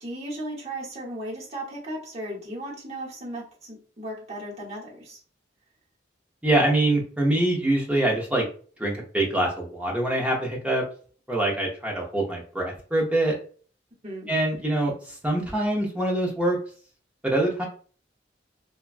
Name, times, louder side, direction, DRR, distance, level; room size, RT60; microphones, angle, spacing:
voice 1, 0.0-5.2 14.0-14.3, right 1 dB, 35° right, -4 dB, 1.0 m, -36 dB
voice 2, 6.4-8.5 8.8-10.8 11.3-13.4 14.3-16.6 17.2-17.7, right 1 dB, 5° right, -2 dB, 0.7 m, -24 dB
2.9 x 2.3 x 2.4 m, 0.42 s
head